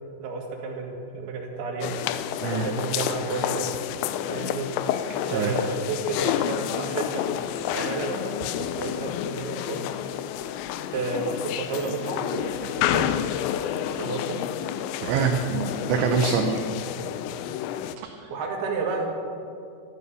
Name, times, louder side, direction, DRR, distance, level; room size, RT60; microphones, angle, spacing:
voice 1, 0.2-2.0 2.6-3.7 4.3-4.7 5.2-7.3 7.7-9.8 10.9-13.2 14.0-14.4 18.3-19.1, right 4 dB, 60° right, 0 dB, 3.4 m, -31 dB
sound 1, 1.8-18.0, left 11 dB, 90° left, 2.5 m, -29 dB
voice 2, 15.0-16.6 18.0-18.3, right 6 dB, 75° right, 3 dB, 2.9 m, -25 dB
13.5 x 12.5 x 6.9 m, 2.4 s
omnidirectional pair, 5.8 m